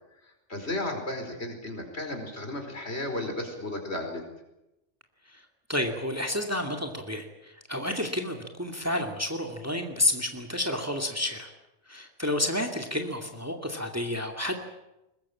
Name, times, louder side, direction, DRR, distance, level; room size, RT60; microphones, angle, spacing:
voice 1, 0.5-4.2, left 1 dB, 60° left, 4 dB, 5.0 m, -34 dB
voice 2, 5.7-11.5 11.9-14.5, left 1 dB, 10° right, 4 dB, 2.4 m, -30 dB
22.5 x 20.5 x 8.6 m, 0.92 s
omnidirectional pair, 1.2 m